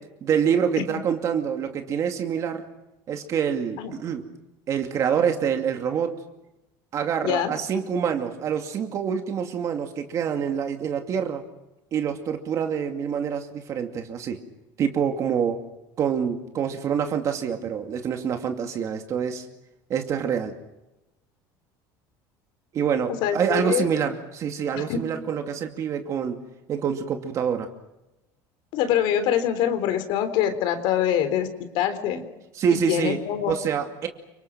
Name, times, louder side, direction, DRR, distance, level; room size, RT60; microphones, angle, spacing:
voice 1, 0.2-2.7 3.1-4.3 4.7-6.2 6.9-11.4 11.9-14.4 14.8-15.6 16.0-19.5 19.9-20.6 22.7-26.4 26.7-27.7 32.6-33.2 33.5-34.1, right 7 dB, 35° right, 5 dB, 2.5 m, -26 dB
voice 2, 23.1-23.9 24.8-25.0 28.7-31.5 31.7-32.2 32.7-33.5, left 10 dB, 60° left, 9 dB, 3.6 m, -24 dB
29.5 x 26.0 x 6.1 m, 0.96 s
cardioid pair, 160°, 9 cm